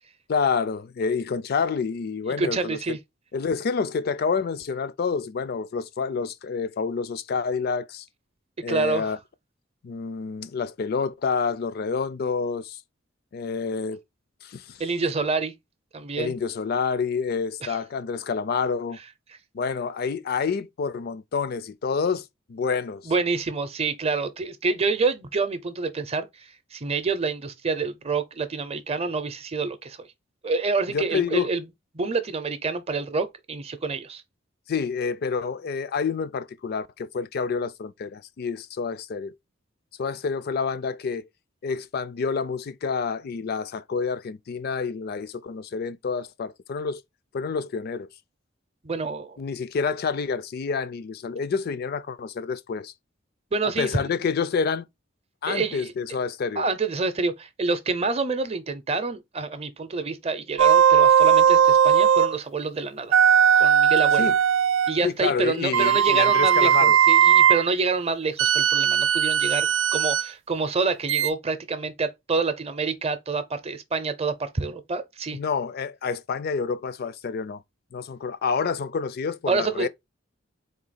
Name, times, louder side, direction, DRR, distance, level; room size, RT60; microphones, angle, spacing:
voice 1, 0.3-3.0 3.3-8.1 8.6-9.2 9.8-12.8 13.3-14.0 14.4-14.8 16.2-19.0 19.5-23.1 30.9-31.5 34.7-39.3 40.0-41.3 41.6-47.0 47.3-48.1 49.4-52.9 53.8-54.9 55.4-56.6 64.2-64.4 65.0-67.0 75.3-77.6 77.9-79.9, left 5 dB, 55° left, 0.4 m, -28 dB
voice 2, 2.4-3.0 8.7-9.1 14.8-15.5 15.9-16.3 17.6-17.8 23.0-30.1 30.4-31.6 31.9-34.2 48.8-49.4 53.5-54.1 55.5-55.9 56.6-63.2 63.6-64.3 64.9-75.4 79.5-79.9, right 4 dB, 35° right, 0.6 m, -27 dB
sound 1, 60.6-62.4 63.1-65.0 65.7-67.6 68.4-70.3 71.1-71.3, right 8 dB, 75° right, 0.4 m, -18 dB
3.9 x 2.7 x 4.0 m
head